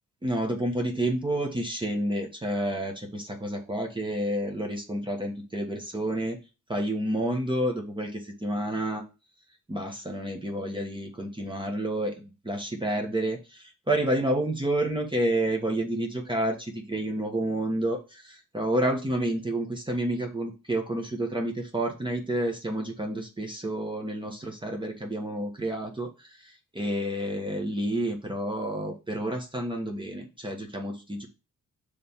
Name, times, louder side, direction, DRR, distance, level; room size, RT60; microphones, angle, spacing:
voice 1, 0.2-6.4 6.7-9.0 9.7-31.3, right 1 dB, 15° right, 2 dB, 1.3 m, -29 dB
5.2 x 3.4 x 5.6 m, 0.30 s
cardioid pair, 85°, 32 cm